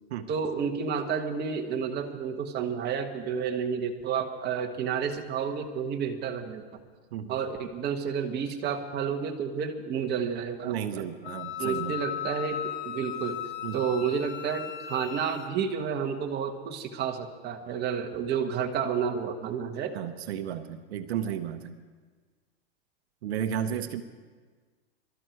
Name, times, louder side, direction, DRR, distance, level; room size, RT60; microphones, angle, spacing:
voice 1, 0.3-6.6 7.3-11.1 11.6-12.6 12.9-13.4 13.7-19.9, right 7 dB, 30° right, 3 dB, 1.6 m, -30 dB
voice 2, 10.6-12.0 13.6-13.8 19.9-21.7 23.2-24.0, right 9 dB, 80° right, 9 dB, 1.0 m, -33 dB
Wind instrument woodwind instrument, 11.2-15.5, left 11 dB, 35° left, 1.1 m, -36 dB
23.5 x 13.0 x 4.7 m, 1.5 s
supercardioid pair, 135°, 32 cm